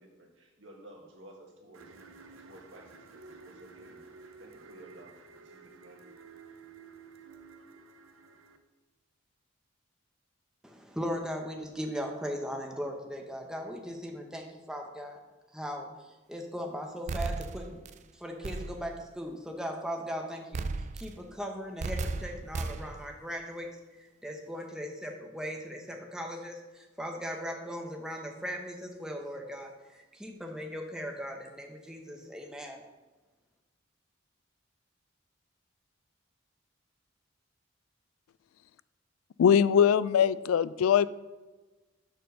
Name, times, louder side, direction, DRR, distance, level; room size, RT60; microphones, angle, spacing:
voice 1, 0.0-6.0, right 1 dB, 65° right, 0 dB, 1.7 m, -54 dB
sound 1, 1.7-8.6, right 4 dB, 80° right, 0.7 m, -52 dB
voice 2, 10.6-15.2 15.5-15.9 16.3-17.8 18.1-20.6 20.9-23.7 24.0-32.8, equal, 5° right, 2 dB, 0.8 m, -38 dB
sound 2, 17.1-18.0 18.4-19.0 20.5-21.3 21.8-23.1, right 3 dB, 35° right, 0.3 m, -35 dB
voice 3, 39.4-41.1, left 8 dB, 90° left, 17 dB, 0.3 m, -22 dB
6.7 x 4.4 x 6.4 m, 1.2 s
head